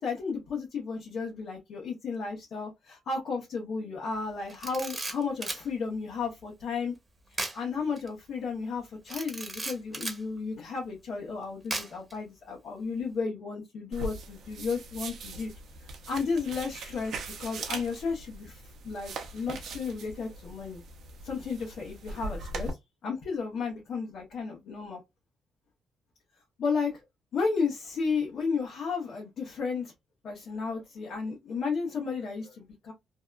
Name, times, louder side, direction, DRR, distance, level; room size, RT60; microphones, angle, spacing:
voice 1, 0.0-6.9 7.3-15.5 16.1-20.8 21.2-22.8 23.0-25.0 26.6-27.0 27.3-29.9 30.2-32.9, left 5 dB, 65° left, 0.9 m, -33 dB
Camera, 4.5-5.7 7.3-7.6 8.0-8.1 9.1-10.2 11.7-12.1, right 2 dB, 20° right, 0.9 m, -35 dB
sound 1, 13.9-22.7, right 3 dB, 70° right, 0.6 m, -41 dB
2.7 x 2.2 x 2.3 m
cardioid pair, 90°, 0 cm